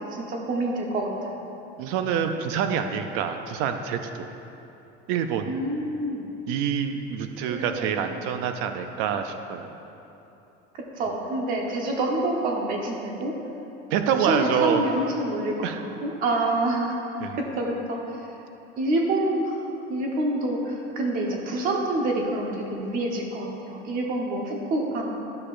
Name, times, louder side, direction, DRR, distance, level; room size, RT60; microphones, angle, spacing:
voice 1, 0.1-1.4 5.5-6.3 7.4-7.9 10.7-13.3 14.2-17.0 17.4-18.3 18.8-19.6 19.9-25.1, right 2 dB, 45° right, 0 dB, 1.0 m, -27 dB
voice 2, 1.8-4.3 5.1-5.5 6.5-9.7 13.9-14.8 15.6-15.8 17.2-17.4, right 8 dB, 90° right, 7 dB, 0.5 m, -26 dB
11.5 x 6.5 x 2.5 m, 3.0 s
cardioid pair, 175°, 20 cm